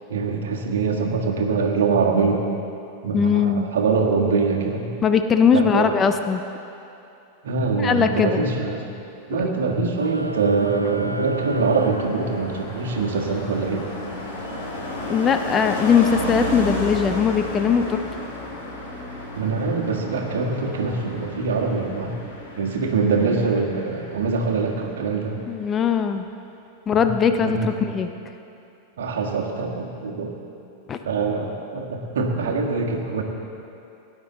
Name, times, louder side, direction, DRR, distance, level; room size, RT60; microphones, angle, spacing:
voice 1, 0.1-2.4 3.0-4.9 5.5-5.9 7.4-8.9 9.3-13.9 19.3-22.1 22.6-25.4 27.0-27.1 27.4-27.7 29.0-30.3 31.0-33.2, right 4 dB, 60° right, 1 dB, 1.5 m, -23 dB
voice 2, 3.1-3.7 5.0-6.4 7.8-8.5 9.3-9.5 15.0-18.0 25.5-26.3 26.9-28.1 30.9-31.0, left 6 dB, 25° left, 7 dB, 0.6 m, -20 dB
sound 1, 9.9-12.9, right 1 dB, 85° right, 0.5 m, -34 dB
Car passing by, 10.1-24.9 25.1-25.5, left 1 dB, 60° left, 2.5 m, -33 dB
18.0 x 9.7 x 3.9 m, 2.7 s
figure-of-eight pair, 90°, 0 cm